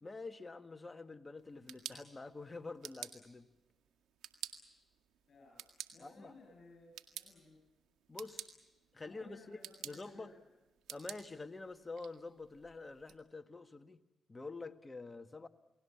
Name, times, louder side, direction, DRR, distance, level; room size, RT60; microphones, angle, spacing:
voice 1, 0.0-3.5 6.0-6.3 8.1-8.5 8.9-9.6 9.8-10.3 10.9-14.0 14.3-15.5, left 3 dB, 30° left, 8 dB, 1.7 m, -47 dB
sound 1, 1.4-13.2, right 10 dB, 90° right, 2.0 m, -52 dB
voice 2, 5.3-7.6 9.1-10.6, left 3 dB, 55° left, 0 dB, 7.9 m, -60 dB
29.5 x 19.5 x 7.2 m, 1.0 s
supercardioid pair, 60°, 0 cm